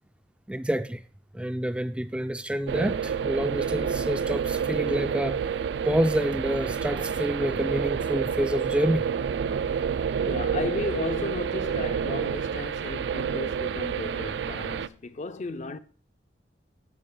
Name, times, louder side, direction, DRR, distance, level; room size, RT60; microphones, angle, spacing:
voice 1, 0.5-1.0 1.3-9.1, right 1 dB, 5° right, 0.3 m, -28 dB
sound 1, 2.7-14.9, right 7 dB, 80° right, 0.4 m, -29 dB
voice 2, 10.3-15.8, left 3 dB, 45° left, 0.5 m, -34 dB
13.0 x 4.9 x 3.8 m
head